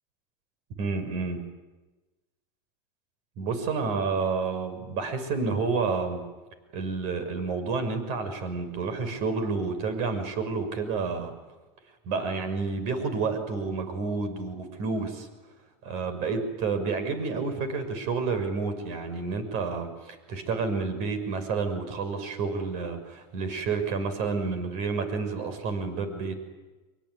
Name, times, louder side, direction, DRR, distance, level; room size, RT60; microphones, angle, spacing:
voice 1, 0.8-1.4 3.4-6.2 6.7-11.3 12.0-15.3 15.8-26.3, right 4 dB, 60° right, 10 dB, 6.3 m, -30 dB
25.0 x 24.5 x 9.7 m, 1.2 s
supercardioid pair, 130°, 13 cm